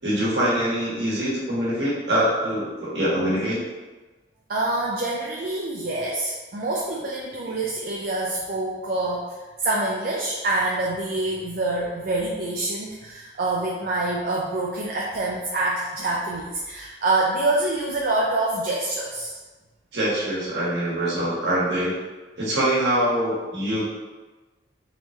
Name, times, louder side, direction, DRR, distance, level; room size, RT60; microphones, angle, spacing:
voice 1, 0.0-3.6 7.4-7.5 19.9-21.9 22.4-23.9, right 1 dB, 65° right, -7 dB, 1.4 m, -24 dB
voice 2, 4.5-19.4, right 2 dB, 50° right, -3 dB, 0.4 m, -26 dB
3.7 x 3.0 x 3.0 m, 1.2 s
head